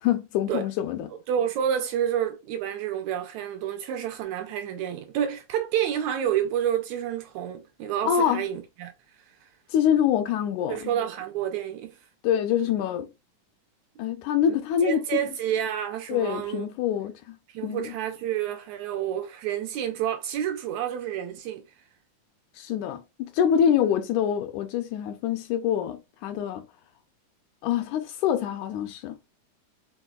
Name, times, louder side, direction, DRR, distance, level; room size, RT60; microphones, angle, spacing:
voice 1, 0.0-1.1 8.1-8.4 9.7-10.9 12.2-13.1 14.0-15.0 16.1-17.4 17.6-17.9 22.6-26.6 27.6-29.2, left 9 dB, 80° left, 1.9 m, -25 dB
voice 2, 1.3-8.9 9.4-9.5 10.7-12.0 14.8-16.6 17.5-21.6, right 10 dB, 80° right, 1.7 m, -29 dB
5.0 x 3.6 x 2.3 m
omnidirectional pair, 3.7 m